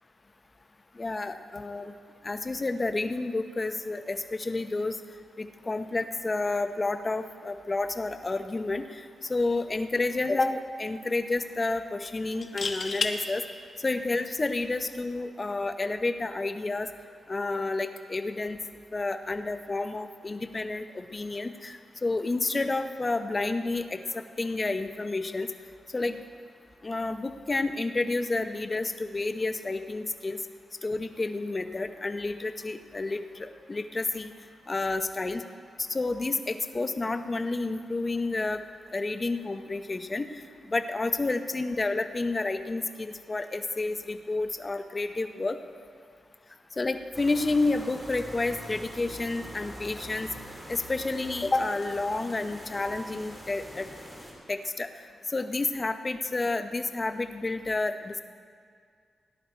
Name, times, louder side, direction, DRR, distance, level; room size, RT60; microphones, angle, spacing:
voice 1, 1.0-1.9 2.2-4.9 5.4-9.0 9.3-13.4 13.8-16.9 17.3-18.6 18.9-25.5 25.9-26.2 26.8-30.4 30.8-34.3 34.7-35.4 35.9-38.6 38.9-40.3 40.7-45.6 46.8-50.3 50.7-53.9 54.5-54.9 55.3-58.1, left 3 dB, 30° left, 8 dB, 0.8 m, -30 dB
sound 1, 9.5-9.7 10.0-10.1 12.3-13.1 15.0-15.2, left 4 dB, 50° left, 1.1 m, -31 dB
sound 2, 47.1-54.3, equal, 5° right, 2.7 m, -44 dB
17.5 x 11.0 x 4.5 m, 2.1 s
cardioid pair, 75°, 0 cm